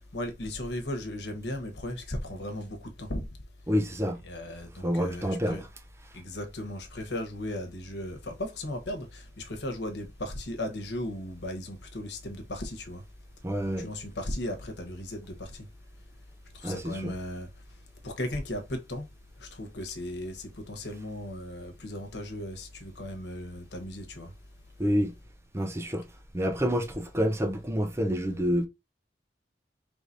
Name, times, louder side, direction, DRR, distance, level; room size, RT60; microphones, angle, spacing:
voice 1, 0.1-3.3 4.2-5.6 6.1-13.0 13.6-15.7 16.5-17.5 18.0-19.0 19.4-24.3, left 1 dB, 80° left, 1.2 m, -36 dB
voice 2, 3.7-4.2 4.8-5.6 13.4-13.9 16.6-17.1 24.8-25.1 25.5-26.0 26.3-28.7, equal, 15° right, 0.6 m, -28 dB
4.8 x 3.4 x 2.6 m
head